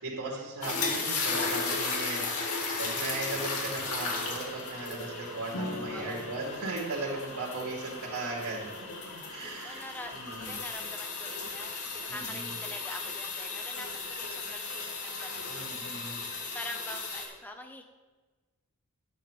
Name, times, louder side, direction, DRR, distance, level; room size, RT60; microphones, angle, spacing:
voice 1, 0.0-2.2 2.8-8.7 9.0-9.8 10.1-10.6 11.5-11.6 12.1-12.5 15.5-16.2, right 3 dB, 75° right, -7 dB, 3.5 m, -37 dB
sound 1, 0.6-17.3, left 4 dB, 85° left, 2.3 m, -35 dB
sound 2, 5.5-12.8, left 1 dB, 70° left, 1.1 m, -45 dB
voice 2, 5.9-6.4 9.6-15.7 16.5-17.8, left 1 dB, 10° left, 4 dB, 1.1 m, -45 dB
12.0 x 10.0 x 3.4 m, 1.3 s
head